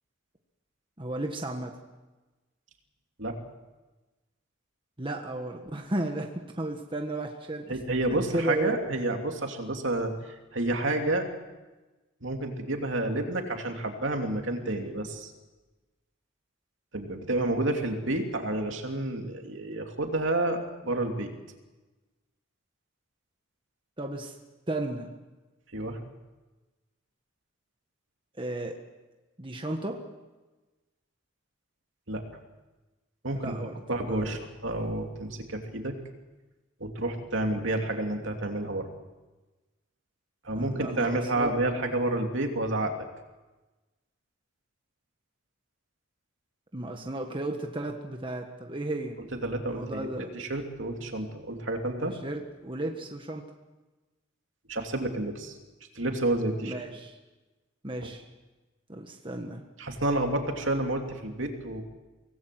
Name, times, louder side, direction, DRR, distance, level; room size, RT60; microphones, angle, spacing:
voice 1, 1.0-1.8 5.0-7.8 8.3-8.8 24.0-24.3 24.7-25.1 28.4-28.8 29.4-30.0 33.3-33.8 34.1-34.4 40.5-41.6 46.7-49.2 49.6-50.3 52.1-53.4 56.6-57.2 57.8-58.2 58.9-59.6, right 1 dB, 25° right, 3 dB, 1.5 m, -34 dB
voice 2, 7.7-11.2 12.2-15.3 16.9-21.3 25.7-26.0 32.1-32.2 33.2-35.9 36.8-38.9 40.4-43.0 49.4-52.1 54.7-55.5 55.9-56.7 59.8-61.8, right 2 dB, 65° right, 3 dB, 2.9 m, -30 dB
25.0 x 19.0 x 7.8 m, 1.2 s
head